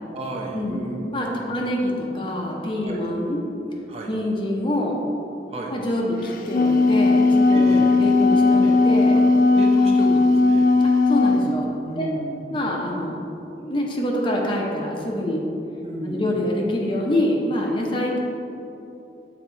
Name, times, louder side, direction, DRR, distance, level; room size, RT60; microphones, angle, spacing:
voice 1, 0.1-1.5 2.8-3.1 3.9-4.1 5.5-5.7 7.5-7.9 8.6-8.7 9.1-9.2 9.5-10.7 11.4-11.5 11.9-12.4 15.8-16.5, right 1 dB, 35° right, 0 dB, 0.6 m, -32 dB
voice 2, 1.1-3.4 4.1-5.0 5.7-9.2 11.1-11.7 12.0-12.1 12.5-13.3 13.6-15.4 16.0-18.2, left 1 dB, 30° left, -1 dB, 0.7 m, -25 dB
Wind instrument woodwind instrument, 6.3-11.5, left 3 dB, 50° left, 0.3 m, -17 dB
7.1 x 3.5 x 4.5 m, 2.9 s
head